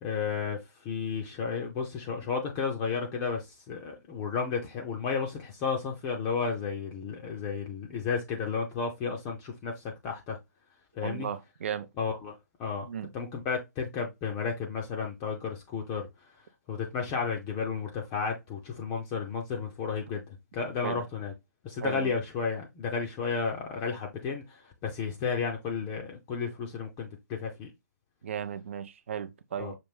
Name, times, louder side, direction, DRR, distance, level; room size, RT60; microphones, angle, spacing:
voice 1, 0.0-10.4 11.0-11.3 12.0-12.3 12.6-12.9 13.1-16.1 16.7-21.3 21.6-24.4 24.8-27.7 29.6-29.7, left 5 dB, 20° left, 0.6 m, -32 dB
voice 2, 11.0-11.9 12.9-13.1 20.8-21.0 21.8-22.1 28.2-29.8, right 8 dB, 45° right, 0.5 m, -36 dB
5.9 x 2.6 x 3.5 m
figure-of-eight pair, 140°, 10 cm